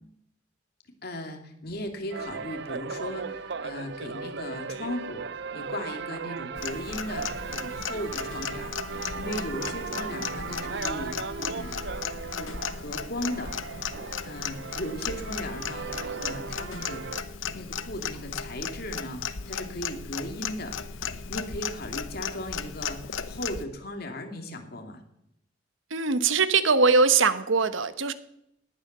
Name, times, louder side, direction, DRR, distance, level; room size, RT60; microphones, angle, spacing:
voice 1, 1.0-11.9 12.4-13.5 14.2-17.0 17.5-20.8 21.1-23.0 23.3-25.0, left 1 dB, 55° left, 4 dB, 2.8 m, -37 dB
sound 1, 2.1-17.2, right 5 dB, 60° right, 0.6 m, -37 dB
Clock, 6.6-23.6, left 6 dB, 90° left, 0.9 m, -36 dB
voice 2, 25.9-28.1, right 4 dB, 90° right, 12 dB, 1.2 m, -21 dB
18.0 x 11.0 x 6.8 m, 0.79 s
head